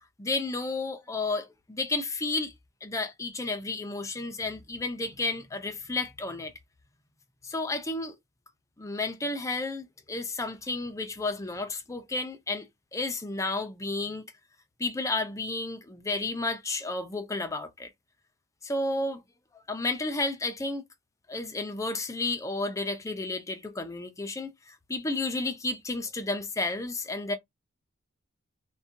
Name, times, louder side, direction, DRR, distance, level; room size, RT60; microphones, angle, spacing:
voice 1, 0.2-2.5 2.8-6.5 7.4-8.2 8.8-14.2 14.8-17.9 18.6-19.2 19.7-20.8 21.3-27.3, left 2 dB, 15° left, 0.4 m, -32 dB
2.4 x 2.2 x 2.7 m
head